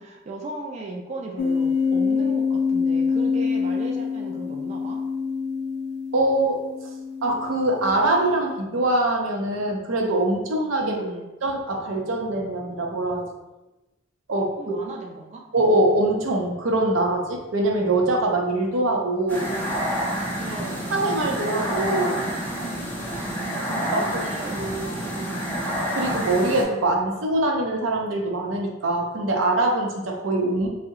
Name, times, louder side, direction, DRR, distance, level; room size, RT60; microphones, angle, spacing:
voice 1, 0.0-5.0 10.8-11.3 14.6-15.4 20.4-21.1 23.4-25.9, right 2 dB, 35° right, 0 dB, 0.3 m, -36 dB
sound 1, 1.4-8.4, left 5 dB, 60° left, 0.4 m, -26 dB
voice 2, 6.1-6.6 7.2-10.9 11.4-13.3 14.3-14.8 15.5-19.5 20.9-22.2 23.9-24.2 25.9-30.7, right 2 dB, 90° right, 1 dB, 0.6 m, -23 dB
sound 2, 19.3-26.6, equal, 10° left, 0.6 m, -28 dB
2.7 x 2.1 x 3.6 m, 1.0 s
head